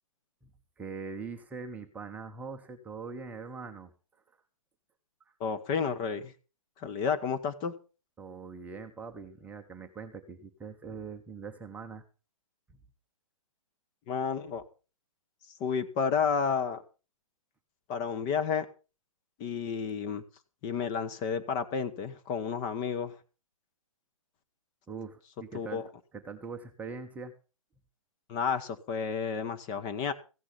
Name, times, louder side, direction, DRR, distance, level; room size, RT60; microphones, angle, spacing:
voice 1, 0.8-3.9 8.2-12.0 24.9-25.8 26.1-27.3, right 5 dB, 10° right, 4 dB, 1.0 m, -42 dB
voice 2, 5.4-6.3 6.8-7.7 14.1-14.6 15.6-16.8 17.9-18.7 19.4-20.2 20.6-23.1 25.5-25.9 28.3-30.1, left 6 dB, 25° left, 9 dB, 1.2 m, -31 dB
15.5 x 10.0 x 5.4 m, 0.34 s
figure-of-eight pair, 130°, 18 cm